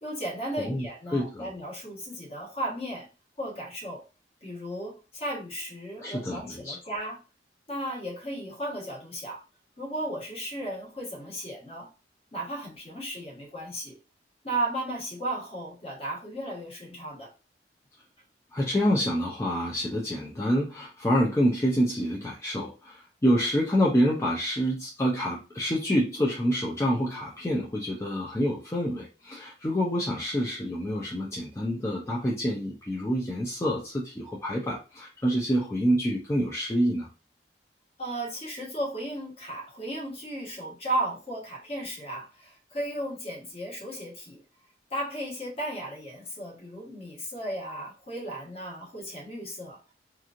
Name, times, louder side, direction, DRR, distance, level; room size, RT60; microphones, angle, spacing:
voice 1, 0.0-3.1 3.4-4.0 4.4-7.2 7.7-9.4 9.8-11.9 12.3-14.0 14.4-17.3 38.0-44.4 44.9-49.8, right 1 dB, 35° left, -3 dB, 1.2 m, -35 dB
voice 2, 1.1-1.5 6.0-6.8 18.5-37.1, equal, 15° left, -4 dB, 0.5 m, -27 dB
3.0 x 2.4 x 2.5 m, 0.32 s
head